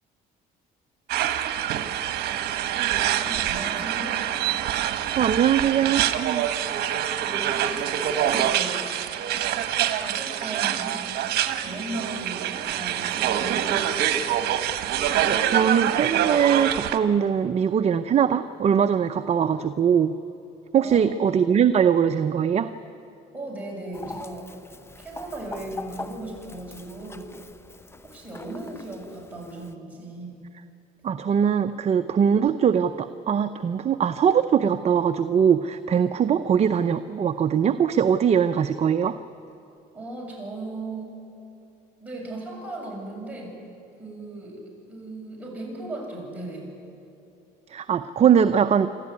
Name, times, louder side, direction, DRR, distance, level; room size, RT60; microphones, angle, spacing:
sound 1, 1.1-17.0, right 10 dB, 70° right, 1.3 m, -25 dB
voice 1, 3.2-4.2 7.2-8.8 9.9-11.0 11.6-13.8 20.8-21.4 23.3-24.5 25.0-27.3 28.0-30.4 39.9-41.1 42.0-43.6 44.0-46.7, right 2 dB, 10° right, -3 dB, 7.2 m, -37 dB
voice 2, 5.2-6.0 15.2-20.1 20.7-22.7 31.0-39.2 47.7-48.9, right 8 dB, 40° right, 9 dB, 0.6 m, -21 dB
Chicken rooster, 23.9-29.7, left 3 dB, 15° left, 0.8 m, -42 dB
27.0 x 13.5 x 9.6 m, 2.6 s
cardioid pair, 110°, 17 cm